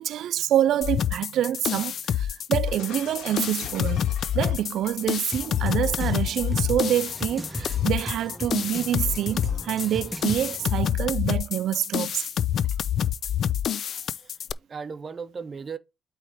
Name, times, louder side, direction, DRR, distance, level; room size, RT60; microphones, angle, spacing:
voice 1, 0.0-4.0 4.3-12.3, right 11 dB, 75° right, 0.3 m, -26 dB
sound 1, 0.8-14.5, left 9 dB, 60° left, 0.3 m, -27 dB
Shatter, 2.7-10.0, left 6 dB, 85° left, 1.6 m, -46 dB
sound 2, 5.3-10.8, equal, 5° right, 1.0 m, -37 dB
voice 2, 13.7-15.8, right 5 dB, 40° right, 0.7 m, -38 dB
8.6 x 3.2 x 4.9 m
cardioid pair, 90°, 0 cm